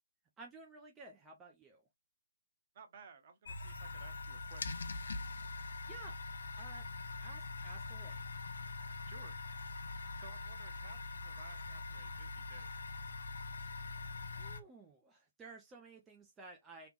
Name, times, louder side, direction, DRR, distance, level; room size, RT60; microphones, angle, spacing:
voice 1, 0.4-1.8 5.9-6.2 6.6-6.9 7.2-8.2 14.3-16.9, right 3 dB, 10° right, 0.6 m, -54 dB
voice 2, 2.7-4.9 9.0-9.4 10.1-12.7, right 5 dB, 35° right, 0.9 m, -57 dB
sound 1, 3.4-14.6, left 3 dB, 55° left, 0.6 m, -43 dB
3.4 x 3.1 x 2.4 m
figure-of-eight pair, 135°, 0 cm